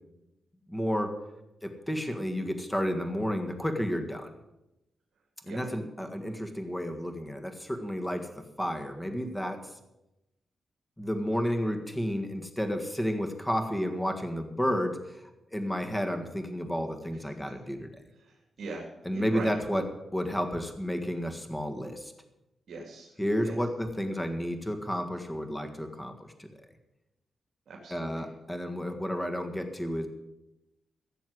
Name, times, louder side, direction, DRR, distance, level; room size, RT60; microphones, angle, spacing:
voice 1, 0.7-1.1 1.6-4.3 5.5-9.7 11.0-18.0 19.0-19.8 20.1-22.1 23.2-26.5 27.9-30.1, equal, 10° left, 6 dB, 1.7 m, -31 dB
voice 2, 18.3-18.9 19.1-19.5 22.7-23.1 23.4-23.5 27.7-28.2, right 3 dB, 65° right, -1 dB, 2.6 m, -41 dB
16.0 x 7.1 x 8.0 m, 0.95 s
wide cardioid pair, 125°, 0 cm